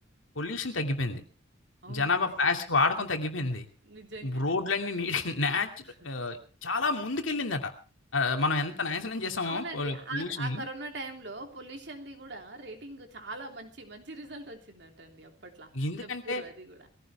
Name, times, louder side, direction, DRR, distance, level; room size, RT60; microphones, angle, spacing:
voice 1, 0.4-1.2 1.9-3.7 4.2-5.7 6.0-7.7 8.1-10.6 15.7-16.4, left 3 dB, 85° left, 4 dB, 2.6 m, -29 dB
voice 2, 1.8-2.6 3.8-4.6 5.8-6.2 9.4-15.7 16.0-16.9, right 2 dB, 60° right, 4 dB, 3.1 m, -42 dB
21.5 x 15.5 x 3.5 m, 0.36 s
head